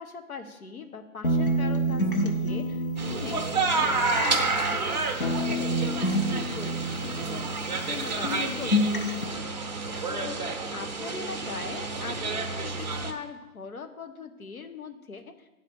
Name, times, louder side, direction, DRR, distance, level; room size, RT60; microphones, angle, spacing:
voice 1, 0.0-3.4 3.7-9.3 10.1-10.4 10.7-15.5, left 5 dB, 70° left, 6 dB, 1.1 m, -41 dB
sound 1, 1.2-4.9 5.2-8.0 8.2-9.2, equal, 40° left, 0.6 m, -28 dB
sound 2, 3.0-13.1, right 3 dB, 30° right, 0.7 m, -30 dB
9.4 x 4.2 x 6.8 m, 0.99 s
figure-of-eight pair, 160°, 44 cm